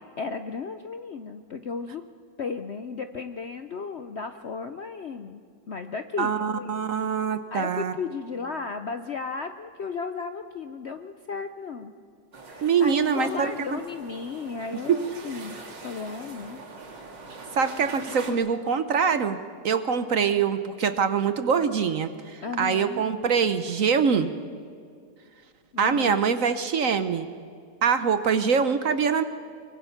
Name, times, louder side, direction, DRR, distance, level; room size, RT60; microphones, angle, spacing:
voice 1, 0.0-2.0 2.4-5.4 5.7-6.9 7.5-11.9 12.5-15.6 15.8-16.6 18.2-18.3 22.4-23.0 25.7-26.2, left 5 dB, 55° left, 8 dB, 0.7 m, -35 dB
voice 2, 6.2-7.9 12.6-13.8 14.9-15.0 17.5-19.4 19.6-24.3 25.8-27.3 27.8-29.2, right 6 dB, 55° right, 11 dB, 1.1 m, -24 dB
sound 1, 12.3-18.3, right 3 dB, 80° right, 2.8 m, -43 dB
24.0 x 23.5 x 5.9 m, 2.2 s
omnidirectional pair, 1.9 m